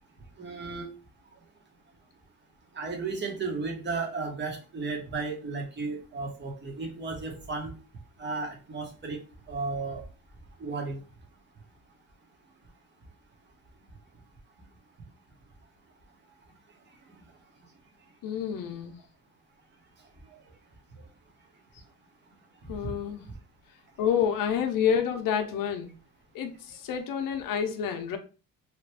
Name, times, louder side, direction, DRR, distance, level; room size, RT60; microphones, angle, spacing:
voice 1, 0.4-0.9 2.7-7.7 8.2-9.2 9.5-10.0 10.6-11.0 22.8-22.9, right 4 dB, 30° right, 1.1 m, -34 dB
voice 2, 18.2-19.0 22.7-23.2 24.0-25.9 26.3-28.2, left 8 dB, 70° left, 0.6 m, -28 dB
3.0 x 2.4 x 3.3 m
cardioid pair, 115°, 34 cm